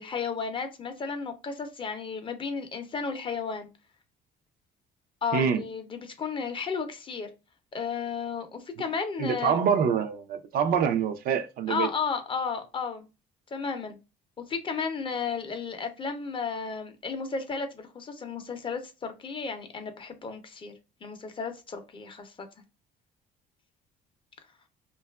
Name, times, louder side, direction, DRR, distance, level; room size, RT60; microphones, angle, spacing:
voice 1, 0.0-3.7 5.2-7.3 7.7-9.6 11.7-13.1 13.5-14.0 14.4-20.7 21.0-22.5, left 5 dB, 30° left, 0.5 m, -33 dB
voice 2, 9.2-11.9, right 7 dB, 60° right, 0.4 m, -25 dB
2.7 x 2.3 x 2.2 m
cardioid pair, 110°, 17 cm